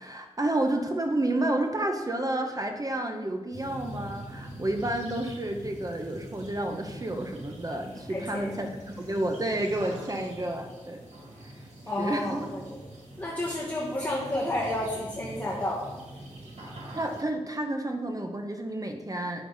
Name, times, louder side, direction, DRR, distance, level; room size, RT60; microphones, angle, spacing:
voice 1, 0.0-11.0 12.0-12.5 16.9-19.4, right 1 dB, 35° right, 4 dB, 0.9 m, -30 dB
sound 1, 3.5-17.2, right 1 dB, 90° right, 2.3 m, -44 dB
voice 2, 8.1-8.7 11.9-12.6 13.2-15.8, left 1 dB, 15° left, -6 dB, 1.7 m, -31 dB
9.8 x 6.6 x 4.0 m, 1.2 s
wide cardioid pair, 70°, 11 cm